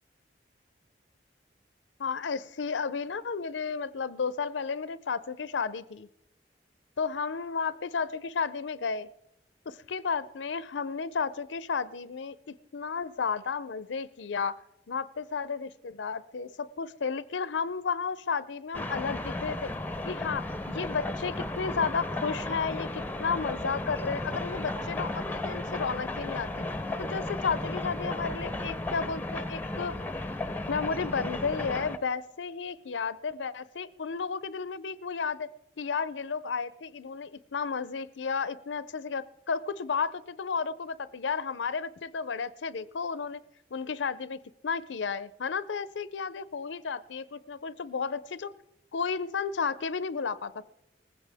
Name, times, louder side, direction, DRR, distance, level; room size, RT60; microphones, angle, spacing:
voice 1, 2.0-6.1 7.0-9.1 9.7-14.6 14.9-19.7 20.1-26.5 27.0-30.0 30.7-35.5 35.8-43.4 43.7-48.5 48.9-50.6, left 5 dB, 85° left, 17 dB, 0.6 m, -33 dB
sound 1, 18.7-32.0, left 2 dB, 10° left, 0.6 m, -34 dB
19.5 x 15.5 x 3.5 m, 0.84 s
head